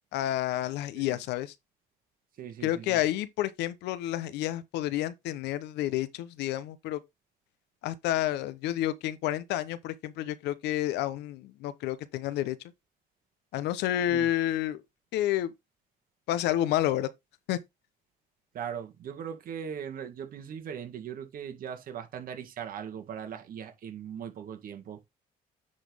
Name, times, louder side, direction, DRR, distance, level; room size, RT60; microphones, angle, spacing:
voice 1, 0.1-1.5 2.6-7.0 7.8-12.6 13.5-14.8 15.1-15.5 16.3-17.1 17.5-17.6, left 13 dB, 85° left, 0.9 m, -30 dB
voice 2, 2.4-3.0 14.0-14.3 18.5-25.0, right 8 dB, 60° right, 2.0 m, -39 dB
9.7 x 4.1 x 3.5 m
cardioid pair, 110°, 17 cm